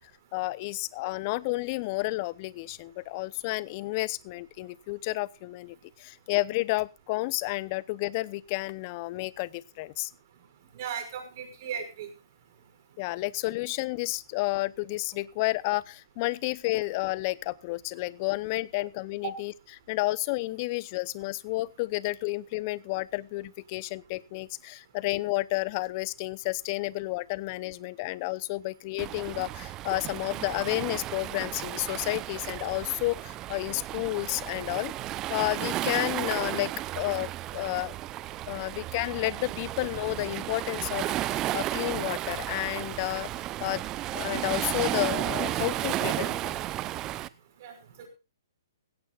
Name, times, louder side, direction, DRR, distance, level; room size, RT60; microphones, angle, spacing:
voice 1, 0.3-10.1 13.0-19.5 19.9-34.9 35.3-37.9 38.5-43.3 43.6-43.8 44.1-46.6, left 21 dB, 35° left, 21 dB, 0.7 m, -31 dB
voice 2, 10.7-12.1 47.6-47.7 48.0-48.1, right 7 dB, 45° right, 6 dB, 5.8 m, -36 dB
Waves surf, 29.0-47.3, right 14 dB, 25° right, 0.6 m, -33 dB
17.5 x 16.5 x 2.4 m, 0.29 s
hypercardioid pair, 135°, 2 cm